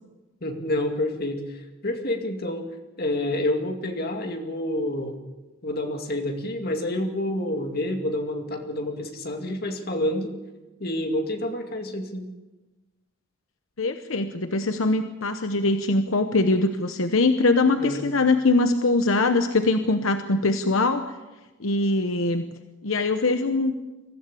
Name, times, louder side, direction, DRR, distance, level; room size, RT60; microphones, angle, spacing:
voice 1, 0.4-2.7 3.0-5.2 5.6-10.4 10.8-12.3 17.8-18.0, left 1 dB, 45° left, 4 dB, 2.4 m, -28 dB
voice 2, 13.8-21.1 21.6-22.4 22.8-23.7, left 2 dB, 75° left, 8 dB, 1.0 m, -22 dB
23.0 x 15.0 x 8.5 m, 1.1 s
head